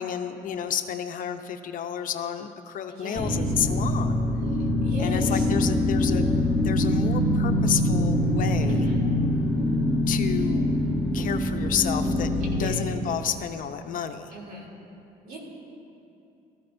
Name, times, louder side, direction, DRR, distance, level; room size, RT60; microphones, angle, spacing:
voice 1, 0.0-4.2 5.0-6.3 6.6-8.9 10.1-10.8 11.1-14.4, left 9 dB, 55° left, 7 dB, 0.6 m, -31 dB
voice 2, 2.9-3.4 4.8-5.4 8.7-9.0 12.5-12.8 14.3-14.7 15.2-15.4, right 2 dB, 65° right, -2 dB, 3.2 m, -37 dB
sound 1, 3.2-12.7, left 1 dB, ahead, 1.7 m, -24 dB
17.0 x 14.0 x 2.6 m, 2.7 s
cardioid pair, 110°, 17 cm